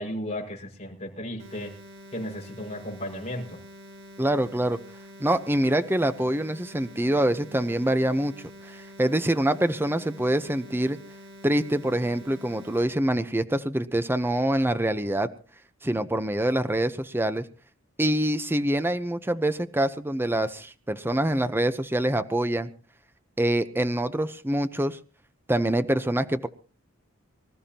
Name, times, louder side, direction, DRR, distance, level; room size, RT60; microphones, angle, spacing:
voice 1, 0.0-1.7 2.1-3.6, left 1 dB, 30° left, 0 dB, 6.0 m, -34 dB
sound 1, 1.4-12.8, equal, 55° right, 3.8 m, -47 dB
voice 2, 4.2-4.8 5.2-8.3 8.7-11.0 11.4-15.3 15.8-17.4 18.0-22.7 23.4-25.0 25.5-26.5, right 1 dB, 10° right, 11 dB, 0.8 m, -25 dB
25.0 x 14.5 x 2.9 m, 0.37 s
head